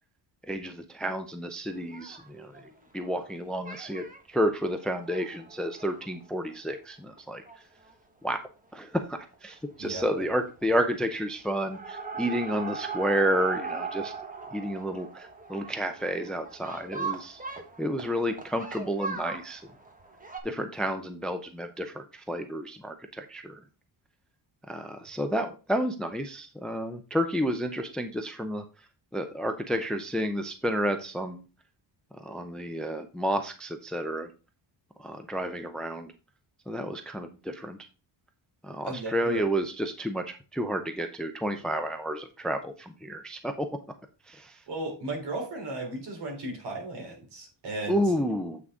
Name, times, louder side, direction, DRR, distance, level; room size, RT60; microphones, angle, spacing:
voice 1, 0.5-2.5 2.9-7.4 8.2-8.4 8.7-14.1 14.5-17.4 17.8-19.6 20.4-23.6 24.7-28.6 29.1-31.4 32.2-34.3 35.0-36.1 36.7-37.8 38.6-43.7 44.3-44.5 47.9-48.6, equal, ahead, 0.5 m, -30 dB
sound 1, 1.8-3.3 3.6-4.2 4.7-6.7 7.2-7.3 7.5-7.6 7.9-8.0 9.3-9.6 9.8-10.3 10.6-11.1 11.4-20.4, right 4 dB, 20° right, 1.2 m, -39 dB
voice 2, 9.8-10.2 38.8-39.4 44.7-48.0, right 2 dB, 60° right, 3.6 m, -35 dB
7.9 x 5.9 x 3.6 m
wide cardioid pair, 175°, 45 cm